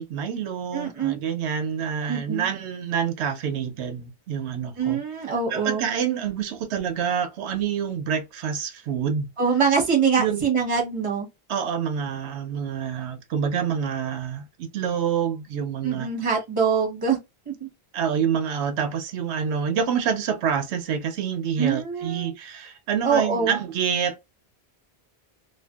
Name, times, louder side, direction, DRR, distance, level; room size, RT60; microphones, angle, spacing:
voice 1, 0.0-5.0 5.5-9.3 10.2-10.5 11.5-16.1 17.9-24.3, right 7 dB, 90° right, 0.9 m, -27 dB
voice 2, 0.7-1.2 2.1-2.5 4.8-5.9 9.4-11.3 15.8-17.2 17.5-17.7 21.6-22.3 23.0-23.6, right 6 dB, 30° right, 1.0 m, -24 dB
2.5 x 2.3 x 2.2 m
omnidirectional pair, 1.1 m